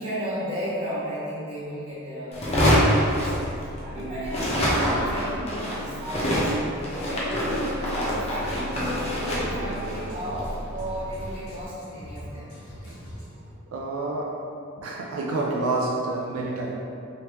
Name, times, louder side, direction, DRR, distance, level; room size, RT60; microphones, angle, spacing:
voice 1, 0.0-6.5 7.0-12.5, equal, 30° right, -11 dB, 1.4 m, -34 dB
sound 1, 2.3-3.9 4.2-11.4, equal, 30° left, 0.6 m, -25 dB
voice 2, 4.0-4.3 13.7-14.5 14.8-16.8, right 2 dB, 85° right, -2 dB, 0.4 m, -28 dB
Drum kit, 8.0-13.5, equal, 85° left, 1.2 m, -42 dB
3.2 x 3.1 x 2.9 m, 2.6 s
head